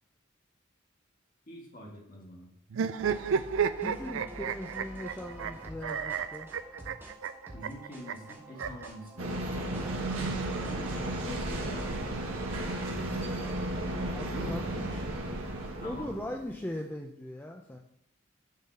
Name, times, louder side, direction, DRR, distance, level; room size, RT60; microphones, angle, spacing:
voice 1, 1.5-2.5 7.5-9.8 10.5-12.4 14.3-14.6 15.8-16.3, equal, 40° left, -2 dB, 1.8 m, -45 dB
sound 1, 2.7-8.9 9.9-11.0, right 7 dB, 70° right, 0.4 m, -33 dB
sound 2, 3.0-12.0, right 1 dB, 10° right, 1.3 m, -48 dB
voice 2, 3.7-6.5 14.1-15.1 15.7-17.8, left 1 dB, 10° left, 1 dB, 0.5 m, -40 dB
sound 3, 9.2-16.5, right 1 dB, 85° right, 1.5 m, -34 dB
7.3 x 3.9 x 5.5 m, 0.74 s
head